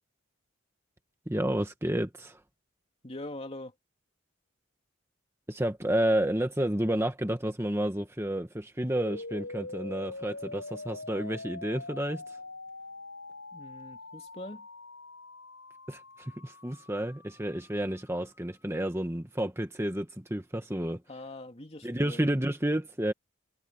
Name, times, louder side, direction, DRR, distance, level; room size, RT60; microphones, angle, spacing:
voice 1, 1.3-2.4 5.5-12.2 15.9-16.0 16.4-21.0 21.8-23.1, right 1 dB, 10° right, 1.4 m, -30 dB
voice 2, 3.0-3.7 13.5-14.7 21.1-22.2, left 1 dB, 30° left, 2.7 m, -42 dB
sound 1, 9.0-19.0, left 2 dB, 65° left, 7.1 m, -44 dB
head